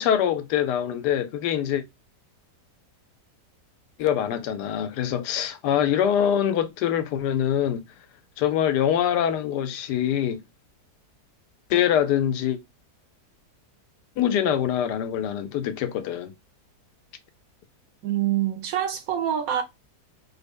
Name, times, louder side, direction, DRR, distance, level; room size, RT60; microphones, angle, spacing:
voice 1, 0.0-1.8 4.0-7.8 8.4-10.4 11.7-12.6 14.2-16.3, left 9 dB, 80° left, 1.2 m, -24 dB
voice 2, 18.0-19.6, right 10 dB, 70° right, 0.9 m, -25 dB
3.9 x 2.1 x 3.5 m
omnidirectional pair, 1.8 m